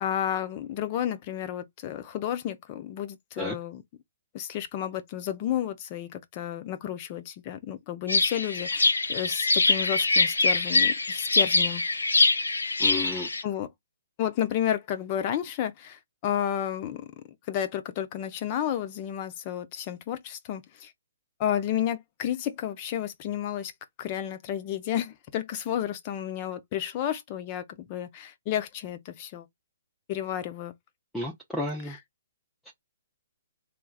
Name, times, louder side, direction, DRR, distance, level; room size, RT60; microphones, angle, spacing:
voice 1, 0.0-3.8 4.3-11.8 13.0-13.7 14.2-17.1 17.5-20.9 21.4-23.7 24.0-29.5 30.1-30.7 31.8-32.0, left 10 dB, 35° left, 0.6 m, -31 dB
sound 1, 8.1-13.4, left 3 dB, 75° left, 0.6 m, -24 dB
voice 2, 12.8-13.3 31.1-32.0 32.7-32.8, left 2 dB, 5° left, 0.7 m, -32 dB
3.3 x 3.2 x 2.3 m
figure-of-eight pair, 125°, 0 cm